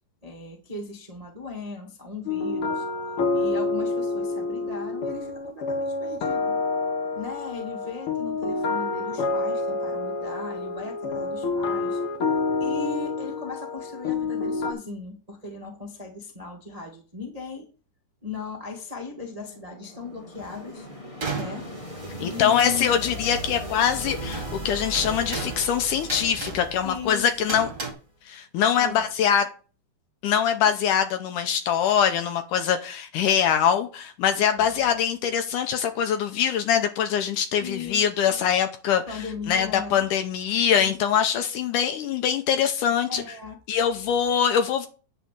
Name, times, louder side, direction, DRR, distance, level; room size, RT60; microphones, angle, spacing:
voice 1, 0.2-2.8 3.3-6.6 7.1-12.0 12.6-17.7 18.2-20.9 21.3-21.7 22.2-22.9 26.8-27.6 28.8-29.1 30.6-30.7 34.6-34.9 37.6-38.4 39.1-40.1 40.8-40.9 43.1-43.6, left 4 dB, 80° right, 0.3 m, -38 dB
sound 1, 2.3-14.7, left 3 dB, 60° left, 1.5 m, -28 dB
sound 2, 19.1-28.0, equal, 40° left, 0.4 m, -38 dB
sound 3, 20.4-20.6 21.2-23.1 23.3-23.6 24.0-27.9, right 4 dB, 35° right, 1.3 m, -36 dB
voice 2, 22.2-27.7 28.3-29.5 30.2-39.0 39.5-43.2 43.7-44.9, left 8 dB, 75° left, 2.0 m, -23 dB
10.0 x 4.1 x 7.6 m
omnidirectional pair, 4.3 m